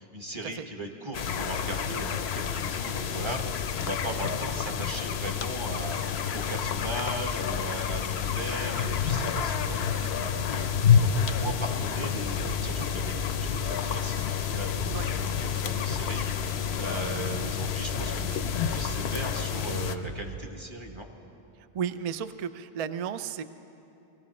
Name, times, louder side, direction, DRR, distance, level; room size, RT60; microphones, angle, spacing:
voice 1, 0.0-9.8 10.4-11.1 11.3-13.1 13.4-21.1, right 2 dB, 30° right, 3 dB, 1.3 m, -38 dB
sound 1, 1.1-20.0, left 8 dB, 85° left, 0.9 m, -29 dB
sound 2, 9.3-11.8 12.1-17.3 17.6-20.4, right 3 dB, 85° right, 1.3 m, -41 dB
voice 2, 21.7-23.4, right 8 dB, 50° right, 12 dB, 0.4 m, -33 dB
20.0 x 15.5 x 4.2 m, 2.8 s
omnidirectional pair, 1.0 m